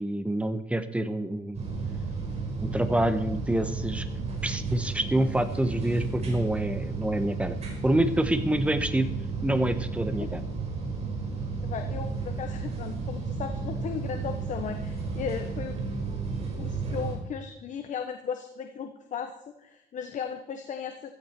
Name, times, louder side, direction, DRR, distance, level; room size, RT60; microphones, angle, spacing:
voice 1, 0.0-1.6 2.6-4.1 4.4-7.5 7.8-9.1 9.4-10.4, right 1 dB, 5° right, 10 dB, 1.1 m, -27 dB
sound 1, 1.5-17.2, right 4 dB, 35° right, 5.0 m, -33 dB
voice 2, 11.6-15.8 16.6-19.3 19.6-21.1, left 7 dB, 45° left, 6 dB, 1.2 m, -36 dB
15.5 x 14.0 x 4.5 m, 0.86 s
cardioid pair, 130°, 19 cm